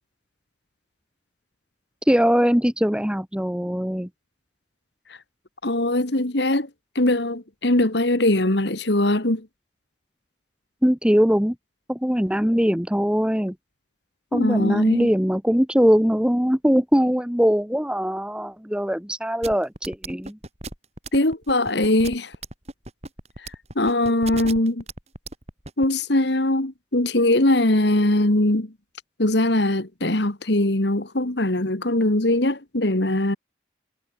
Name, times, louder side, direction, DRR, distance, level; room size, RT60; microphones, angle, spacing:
voice 1, 2.1-4.1 10.8-11.5 11.9-13.5 14.3-20.4, equal, 5° right, 1.1 m, -21 dB
voice 2, 5.6-6.7 7.0-9.5 14.3-15.1 21.1-22.3 23.4-24.8 25.8-28.7 29.2-33.4, left 1 dB, 60° left, 2.0 m, -21 dB
sound 1, 19.4-25.9, right 2 dB, 35° right, 4.1 m, -35 dB
head